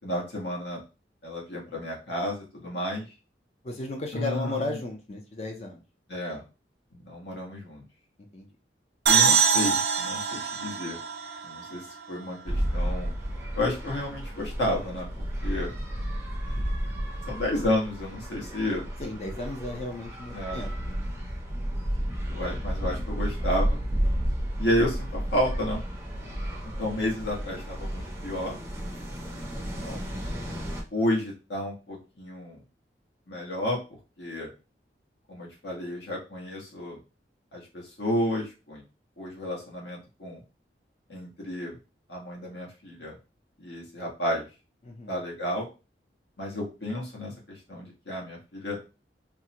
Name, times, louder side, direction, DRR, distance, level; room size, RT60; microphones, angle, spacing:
voice 1, 0.0-0.8 1.2-3.1 4.1-4.8 6.1-6.4 6.9-7.8 9.1-11.0 11.4-13.1 13.5-15.1 15.4-15.7 17.3-18.9 20.3-20.6 21.9-23.8 24.6-25.8 26.8-28.6 29.6-30.0 30.9-32.6 33.3-34.5 35.3-37.0 37.5-38.8 39.2-40.4 41.1-41.8 42.1-43.2 43.6-44.5 45.1-45.7 46.4-48.8, left 1 dB, 75° left, -2 dB, 1.2 m, -31 dB
voice 2, 3.6-5.8 8.3-8.5 19.0-21.0 29.4-29.8 44.9-45.1, left 2 dB, 35° left, 2 dB, 0.5 m, -35 dB
sound 1, 9.1-12.6, right 6 dB, 65° right, 0.5 m, -24 dB
sound 2, 12.4-30.8, equal, 15° right, 0.6 m, -32 dB
3.6 x 2.1 x 2.8 m, 0.30 s
head